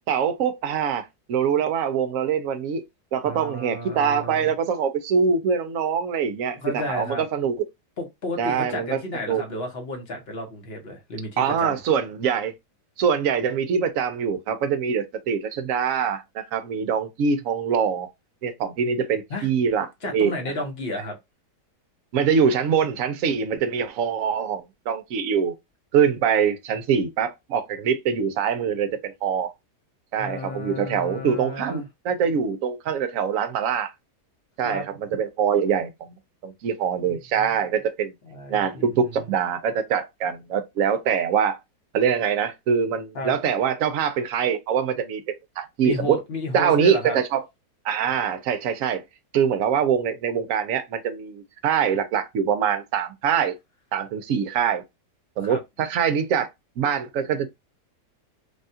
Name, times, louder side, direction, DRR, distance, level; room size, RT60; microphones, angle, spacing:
voice 1, 0.1-2.8 3.1-7.6 8.4-9.0 9.3-9.4 11.4-12.5 13.0-18.1 18.4-20.3 22.1-25.5 25.9-29.5 30.1-33.9 34.6-34.8 35.1-36.2 36.4-38.1 38.5-41.6 41.9-46.2 46.5-47.4 47.8-49.0 49.3-53.6 53.9-54.8 55.4-56.5 56.8-57.5, right 7 dB, 65° right, 0.8 m, -24 dB
voice 2, 3.2-4.5 6.5-7.2 8.0-11.8 19.3-19.5 20.0-21.1 30.2-31.9 34.6-34.9 37.4-37.6 38.2-38.9 43.1-43.4 45.8-47.2 55.4-55.6, left 1 dB, 45° left, 0.9 m, -32 dB
3.4 x 2.3 x 2.6 m
omnidirectional pair, 1.8 m